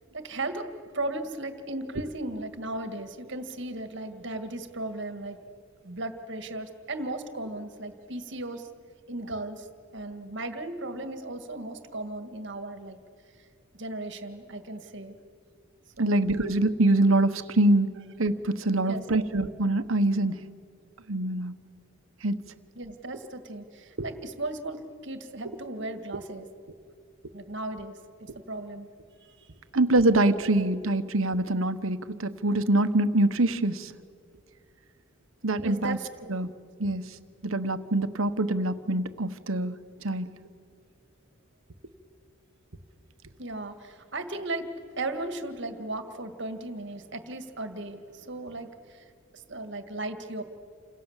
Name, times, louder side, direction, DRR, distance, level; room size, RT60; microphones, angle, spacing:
voice 1, 0.1-0.7 0.9-5.4 5.8-8.7 9.1-9.7 9.9-13.0 13.4-13.5 13.7-15.2 16.0-16.3 18.9-19.3 22.8-26.5 27.3-27.9 28.2-28.9 29.2-29.5 30.6-30.7 35.6-36.1 36.8-36.9 43.4-44.7 45.0-49.0 49.3-50.4, right 2 dB, 60° right, 8 dB, 2.0 m, -36 dB
voice 2, 16.0-20.5 21.1-21.6 22.2-22.4 24.0-24.1 29.7-33.9 35.4-36.0 36.3-36.5 36.8-37.1 37.4-39.8 40.0-40.4, right 2 dB, 80° right, 10 dB, 1.2 m, -25 dB
29.0 x 26.5 x 7.4 m, 2.2 s
head